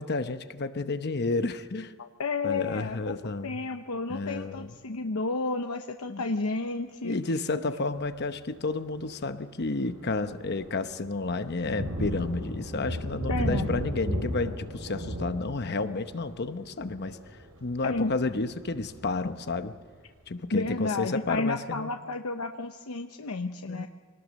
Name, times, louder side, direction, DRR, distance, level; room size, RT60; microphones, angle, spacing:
voice 1, 0.0-1.9 2.4-3.6 4.1-4.7 6.1-6.2 7.0-17.2 17.6-19.7 20.3-21.9 23.7-23.9, left 3 dB, 50° left, 10 dB, 0.9 m, -31 dB
voice 2, 2.0-3.2 3.4-7.2 13.3-13.7 17.8-18.1 20.5-23.9, left 3 dB, 85° left, 5 dB, 0.9 m, -31 dB
Thunder, 7.9-8.2 8.8-9.0 9.4-20.0, equal, 85° right, 6.0 m, -36 dB
25.5 x 19.0 x 6.4 m, 1.5 s
head